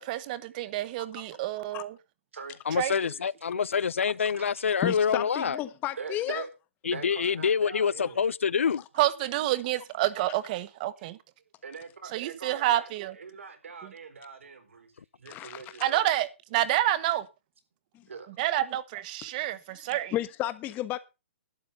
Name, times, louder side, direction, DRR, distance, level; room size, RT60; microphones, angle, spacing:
voice 1, 0.0-1.9 2.7-2.9 9.0-11.2 12.1-13.1 13.8-13.9 15.8-17.3 18.4-19.6 19.9-20.1, right 14 dB, 40° right, 1.4 m, -28 dB
voice 2, 2.7-5.6 6.8-8.8, left 6 dB, 85° left, 0.6 m, -26 dB
voice 3, 4.1-4.5 6.0-6.5 6.8-8.2 11.6-12.9 13.1-16.0 18.1-18.3, right 5 dB, 80° right, 4.1 m, -42 dB
voice 4, 4.8-6.4 8.0-8.1 15.2-15.8 20.1-21.0, left 14 dB, 25° left, 1.3 m, -32 dB
12.0 x 9.3 x 5.5 m
hypercardioid pair, 140°, 7 cm